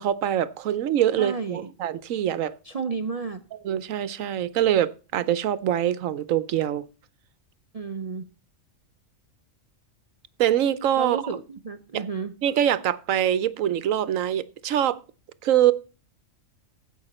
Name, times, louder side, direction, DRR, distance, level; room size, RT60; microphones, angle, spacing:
voice 1, 0.0-2.5 3.6-6.8 10.4-11.2 11.9-12.0 12.4-15.0 15.4-15.7, right 11 dB, 80° right, 1.1 m, -24 dB
voice 2, 1.2-1.7 2.6-3.4 7.7-8.3 11.0-12.3, right 5 dB, 45° right, 0.5 m, -32 dB
15.5 x 5.6 x 4.2 m
omnidirectional pair, 1.4 m